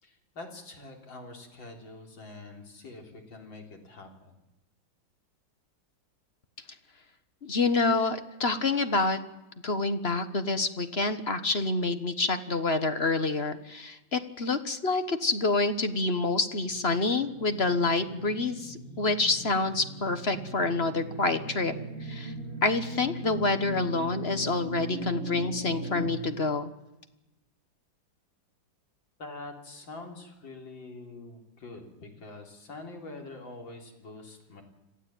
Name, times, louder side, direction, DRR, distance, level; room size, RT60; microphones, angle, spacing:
voice 1, 0.0-4.3 29.2-34.6, left 2 dB, 80° left, 2 dB, 4.4 m, -45 dB
voice 2, 7.4-9.2 9.6-21.7 22.0-22.3 22.6-26.7, left 3 dB, 35° left, 10 dB, 1.4 m, -27 dB
sound 1, 16.5-26.0, right 1 dB, 30° right, 7.4 m, -39 dB
26.5 x 15.0 x 9.1 m, 0.98 s
omnidirectional pair, 2.1 m